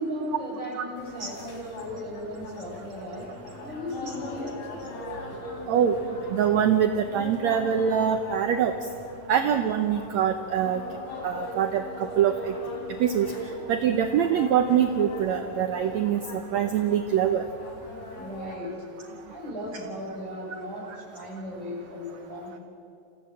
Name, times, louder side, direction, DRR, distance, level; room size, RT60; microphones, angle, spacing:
voice 1, 0.0-3.3 3.6-4.5 18.2-18.8 19.3-22.6, equal, 10° left, -6 dB, 6.8 m, -36 dB
sound 1, 1.0-18.6, left 1 dB, 55° left, 3.7 m, -39 dB
voice 2, 6.3-8.7 9.3-10.8 11.2-11.8 12.2-12.5 13.0-13.3 13.7-16.2 16.5-17.4, right 9 dB, 70° right, 7 dB, 1.8 m, -23 dB
27.5 x 16.0 x 7.7 m, 2.5 s
omnidirectional pair, 3.9 m